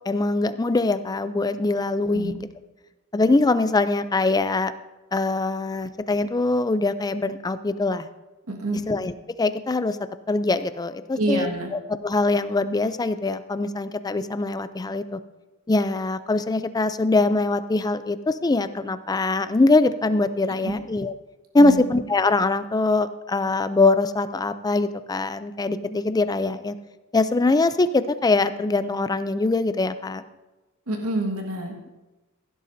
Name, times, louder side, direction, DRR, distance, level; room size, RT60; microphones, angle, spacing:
voice 1, 0.1-2.4 3.1-4.7 5.1-8.1 8.9-9.1 9.4-10.0 10.3-11.5 12.0-15.2 15.7-21.1 21.5-26.8 27.1-30.2, left 3 dB, 15° left, 12 dB, 0.4 m, -22 dB
voice 2, 8.5-8.8 11.2-11.7 20.6-20.8 21.6-21.9 30.9-31.9, right 1 dB, 80° right, 1 dB, 1.7 m, -27 dB
16.0 x 11.5 x 2.7 m, 1.1 s
head